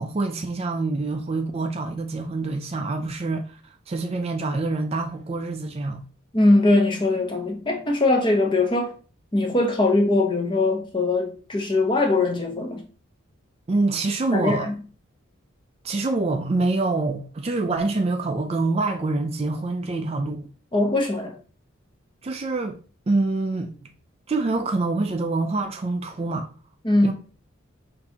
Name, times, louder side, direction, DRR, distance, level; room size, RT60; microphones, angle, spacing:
voice 1, 0.0-6.0 13.7-14.7 15.8-20.5 22.2-22.8 23.1-23.7 24.3-26.5 27.0-27.1, right 3 dB, 30° right, 0.4 m, -26 dB
voice 2, 6.3-8.9 9.3-12.8 14.3-14.7 20.7-21.4 26.8-27.1, left 2 dB, 25° left, 0.7 m, -21 dB
6.0 x 2.7 x 2.8 m
head